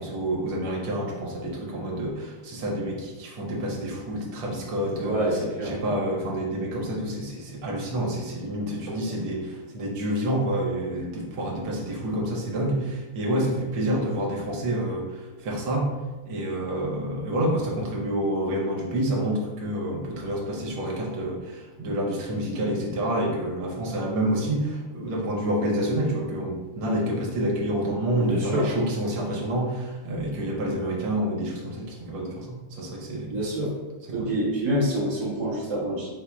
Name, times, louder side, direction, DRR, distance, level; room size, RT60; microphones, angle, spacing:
voice 1, 0.0-5.2 5.6-16.0 16.3-33.3 34.1-34.3, right 1 dB, 75° right, -2 dB, 1.6 m, -28 dB
voice 2, 5.0-5.8 28.2-28.7 33.3-33.7 34.1-36.1, right 1 dB, 25° right, -7 dB, 0.8 m, -26 dB
4.3 x 2.1 x 4.5 m, 1.2 s
omnidirectional pair, 2.4 m